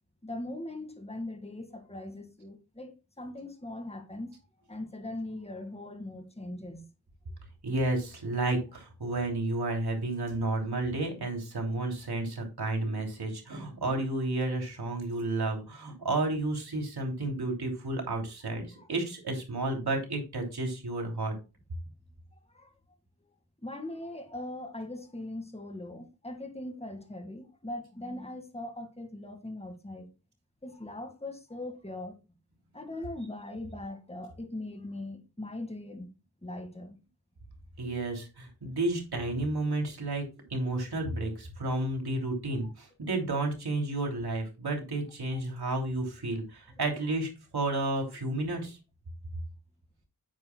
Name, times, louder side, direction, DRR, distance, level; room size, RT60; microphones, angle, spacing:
voice 1, 0.2-4.3 4.7-6.9 18.7-18.9 22.5-22.7 23.2-30.1 30.6-32.2 32.7-36.1 36.4-37.0 42.6-42.7 45.3-45.7, left 1 dB, 15° left, 1.9 m, -40 dB
voice 2, 7.6-21.3 37.8-48.8, right 2 dB, 80° right, 3.1 m, -31 dB
9.5 x 9.2 x 2.3 m
cardioid pair, 50°, 38 cm